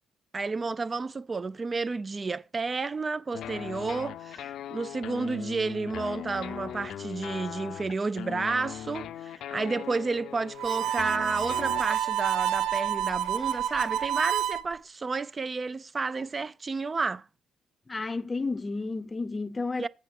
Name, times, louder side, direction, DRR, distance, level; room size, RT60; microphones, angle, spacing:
voice 1, 0.3-17.2 19.8-19.9, right 4 dB, 30° right, 0.4 m, -31 dB
sound 1, 3.3-11.8, left 10 dB, 75° left, 0.5 m, -39 dB
Harmonica, 10.6-14.6, right 10 dB, 85° right, 0.5 m, -28 dB
voice 2, 17.9-19.9, left 3 dB, 25° left, 0.6 m, -32 dB
9.4 x 4.8 x 5.9 m
cardioid pair, 90°, 0 cm